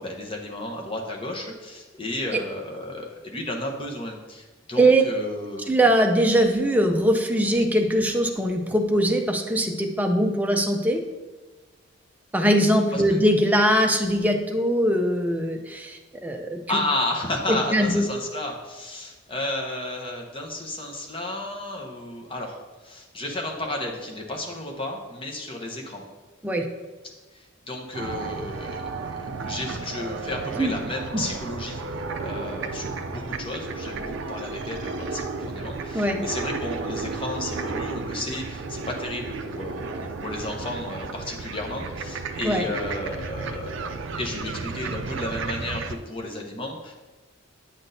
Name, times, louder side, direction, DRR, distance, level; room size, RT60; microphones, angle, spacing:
voice 1, 0.0-5.7 12.9-13.2 16.7-26.0 27.3-46.9, left 1 dB, 25° left, 1 dB, 0.9 m, -33 dB
voice 2, 5.7-11.0 12.3-16.6 17.5-18.0 26.4-26.6 30.6-30.7 31.1-31.2 35.9-36.2 42.4-42.7, right 1 dB, 10° right, 3 dB, 0.5 m, -21 dB
sound 1, 27.9-45.9, right 4 dB, 60° right, 0.4 m, -33 dB
8.8 x 6.0 x 2.7 m, 1.3 s
head